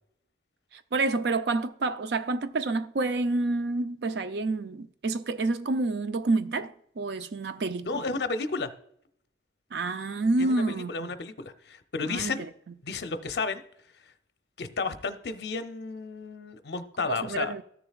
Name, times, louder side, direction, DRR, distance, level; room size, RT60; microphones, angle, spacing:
voice 1, 0.7-8.0 9.7-11.1 12.0-12.5 17.0-17.6, right 3 dB, 65° right, 0.5 m, -28 dB
voice 2, 7.9-8.7 10.4-12.4 12.8-13.6 14.6-17.5, left 4 dB, 65° left, 0.7 m, -32 dB
13.5 x 6.9 x 2.4 m
head